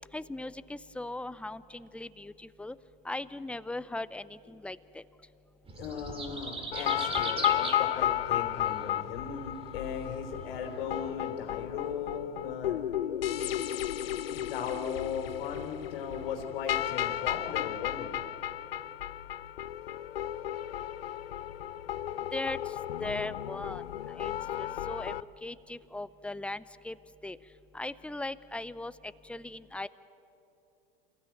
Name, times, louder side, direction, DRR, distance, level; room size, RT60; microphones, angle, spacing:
voice 1, 0.1-2.7 3.0-5.0 22.3-22.6 23.0-23.8 24.2-24.3 24.6-25.1 25.4-26.9 27.2-27.4 27.7-29.9, left 2 dB, 5° left, 17 dB, 0.5 m, -38 dB
sound 1, 5.7-11.1, right 3 dB, 20° right, 2.6 m, -41 dB
voice 2, 5.8-12.8 14.3-18.1, left 7 dB, 65° left, 2 dB, 3.4 m, -37 dB
sound 2, 6.7-25.2, left 11 dB, 80° left, 0.6 m, -33 dB
28.0 x 15.5 x 9.2 m, 2.9 s
hypercardioid pair, 90°, 29 cm